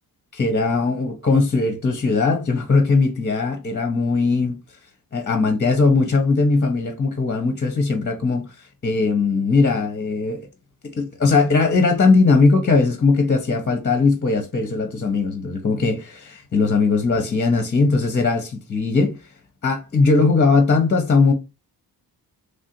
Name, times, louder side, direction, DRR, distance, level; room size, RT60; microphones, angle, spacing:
voice 1, 0.3-4.6 5.1-10.5 10.9-19.2 19.6-21.3, left 4 dB, 25° left, 0.6 m, -19 dB
3.3 x 2.4 x 2.6 m
cardioid pair, 100°, 40 cm